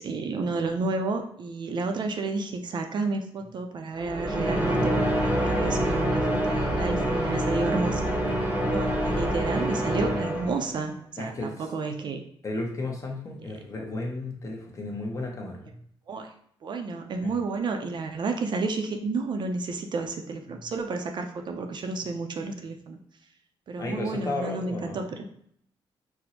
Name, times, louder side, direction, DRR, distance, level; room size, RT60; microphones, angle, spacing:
voice 1, 0.0-8.1 8.7-12.2 16.1-16.3 16.6-23.0 23.7-25.2, right 3 dB, 55° right, 4 dB, 0.4 m, -31 dB
sound 1, 4.0-10.9, equal, 15° right, 0.8 m, -26 dB
voice 2, 11.2-11.7 12.4-15.8 17.2-17.3 20.5-20.6 23.8-25.0, left 2 dB, 35° left, 1 dB, 0.8 m, -33 dB
4.2 x 2.0 x 2.7 m, 0.67 s
cardioid pair, 105°, 9 cm